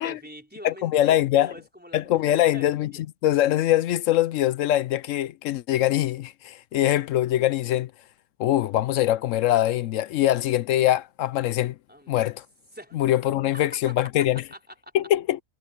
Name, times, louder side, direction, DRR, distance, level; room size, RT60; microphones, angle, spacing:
voice 1, 0.0-3.0 11.9-12.2 12.7-13.0 14.5-14.9, equal, 5° right, 4.4 m, -44 dB
voice 2, 0.6-1.5 1.9-7.9 8.4-11.8 12.1-12.4 12.9-14.4 14.9-15.4, left 13 dB, 70° left, 0.8 m, -23 dB
omnidirectional pair, 1.6 m